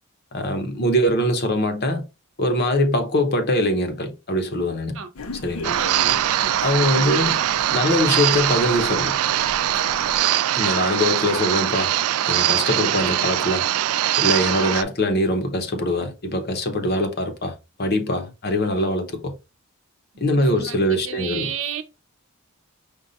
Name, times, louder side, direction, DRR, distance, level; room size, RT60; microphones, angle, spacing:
voice 1, 0.3-2.0 2.4-5.0 5.4-5.7 6.6-7.4 7.7-9.2 10.5-11.9 12.2-13.7 14.2-17.5 17.8-19.3 20.2-21.5, left 1 dB, 45° left, 0.8 m, -22 dB
sound 1, 5.1-10.2, left 3 dB, 75° left, 0.7 m, -37 dB
sound 2, 5.6-14.8, right 12 dB, 90° right, 0.3 m, -22 dB
voice 2, 5.7-6.6 20.3-21.8, right 7 dB, 60° right, 0.7 m, -33 dB
5.3 x 2.3 x 4.0 m
head